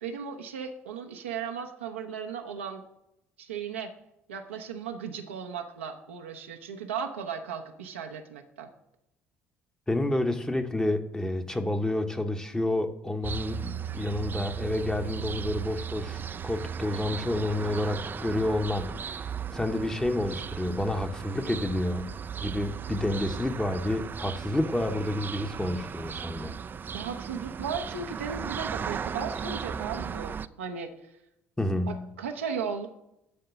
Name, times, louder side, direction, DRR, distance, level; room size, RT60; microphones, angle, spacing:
voice 1, 0.0-2.8 3.4-3.9 4.3-8.7 26.9-31.1 31.9-32.9, right 6 dB, 80° right, 0.7 m, -36 dB
voice 2, 9.9-19.3 19.5-22.1 22.4-26.5 31.6-32.1, left 1 dB, 10° left, 1.0 m, -29 dB
sound 1, 13.2-30.5, right 7 dB, 30° right, 0.4 m, -36 dB
11.5 x 3.8 x 6.8 m
figure-of-eight pair, 55°, 6 cm